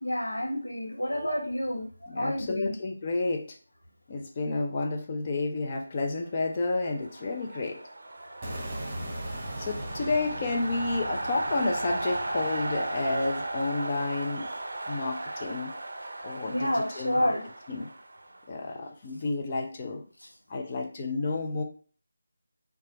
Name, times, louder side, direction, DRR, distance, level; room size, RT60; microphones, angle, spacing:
voice 1, 0.0-2.7 9.1-9.2 16.5-17.4 20.2-20.3, equal, 85° left, 0 dB, 1.0 m, -29 dB
voice 2, 2.1-3.6 4.1-7.8 9.6-14.5 14.9-15.8 16.2-17.3 17.7-17.9 18.5-20.0 20.5-21.6, left 3 dB, 30° left, 2 dB, 0.5 m, -31 dB
sound 1, 6.7-18.7, right 2 dB, 60° right, 0.5 m, -36 dB
sound 2, 8.4-14.5, right 1 dB, 25° right, 0.9 m, -40 dB
3.0 x 2.3 x 3.9 m, 0.40 s
figure-of-eight pair, 160°, 0 cm